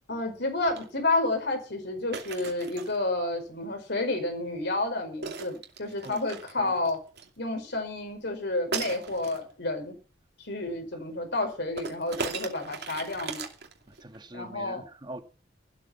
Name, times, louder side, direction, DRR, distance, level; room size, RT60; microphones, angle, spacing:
voice 1, 0.1-7.0 7.4-9.9 10.4-13.4 14.3-14.8, left 2 dB, 60° left, 5.1 m, -30 dB
sound 1, 0.6-0.9 2.1-3.0 5.2-7.3 8.7-9.4 11.8-14.2, right 5 dB, 60° right, 2.7 m, -37 dB
voice 2, 14.0-15.2, right 1 dB, 25° right, 1.8 m, -43 dB
14.5 x 12.5 x 5.9 m
head